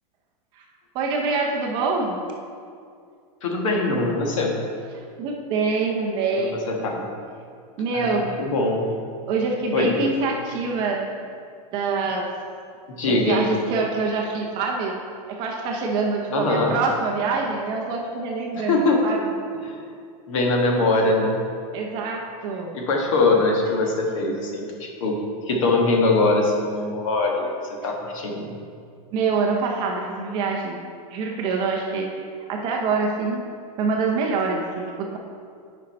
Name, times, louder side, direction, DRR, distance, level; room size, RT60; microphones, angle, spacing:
voice 1, 0.9-2.2 5.2-6.6 7.8-8.3 9.3-11.0 11.7-12.3 13.0-15.0 15.3-19.2 21.7-22.7 29.1-30.8 31.1-33.4 33.8-35.2, right 4 dB, 25° right, 0 dB, 0.6 m, -25 dB
voice 2, 3.4-4.5 6.3-6.6 6.8-7.0 7.9-8.9 9.7-10.0 12.9-13.4 16.3-16.7 18.5-19.0 19.6-19.8 20.3-21.4 22.7-25.2 25.5-27.5 27.8-28.5, left 2 dB, 55° left, 0 dB, 1.4 m, -22 dB
9.0 x 5.3 x 4.2 m, 2.3 s
supercardioid pair, 175°, 19 cm